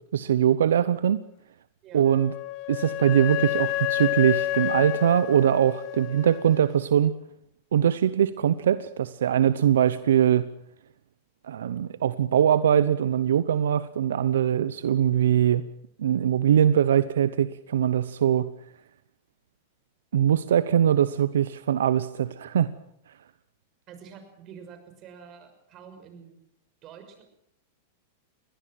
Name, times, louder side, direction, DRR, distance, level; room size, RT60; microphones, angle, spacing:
voice 1, 0.1-1.2 1.9-2.3 2.7-7.1 7.7-10.5 11.5-15.6 16.0-18.5 20.1-22.7, right 9 dB, 85° right, 15 dB, 0.8 m, -22 dB
Wind instrument woodwind instrument, 2.0-6.7, left 17 dB, 45° left, 1.4 m, -30 dB
voice 2, 23.9-26.4 26.8-27.2, right 7 dB, 40° right, 8 dB, 6.0 m, -47 dB
21.5 x 18.5 x 7.7 m, 0.75 s
hypercardioid pair, 120°, 0 cm